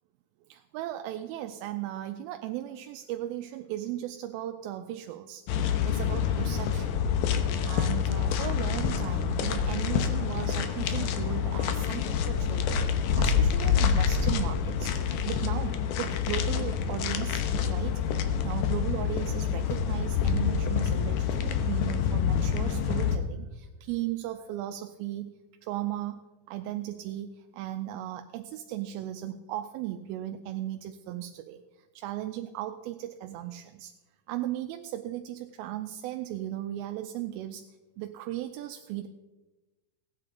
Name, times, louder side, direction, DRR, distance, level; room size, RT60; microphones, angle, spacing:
voice 1, 0.5-5.5 5.8-7.1 7.6-12.9 13.2-26.2 26.5-33.9 34.3-37.7 38.0-39.1, right 13 dB, 80° right, 7 dB, 2.3 m, -36 dB
sound 1, 5.5-23.2, left 7 dB, 75° left, 2.0 m, -27 dB
17.5 x 9.2 x 3.8 m, 1.2 s
omnidirectional pair, 4.6 m